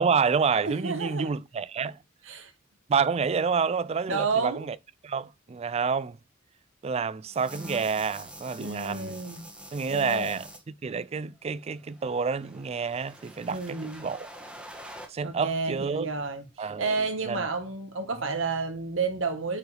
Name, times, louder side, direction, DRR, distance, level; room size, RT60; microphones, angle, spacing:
voice 1, 0.0-2.0 2.9-4.8 5.0-6.2 6.8-9.2 9.7-14.3 15.1-16.1 16.6-16.9 17.3-17.5, right 5 dB, 30° right, 0.3 m, -28 dB
voice 2, 0.6-1.3 2.2-2.5 4.1-4.7 8.6-9.4 9.9-10.4 13.5-14.1 15.2-19.6, right 4 dB, 80° right, 1.6 m, -31 dB
sound 1, 7.3-10.6 11.7-15.1, right 1 dB, 5° right, 1.5 m, -46 dB
9.3 x 4.8 x 3.4 m
head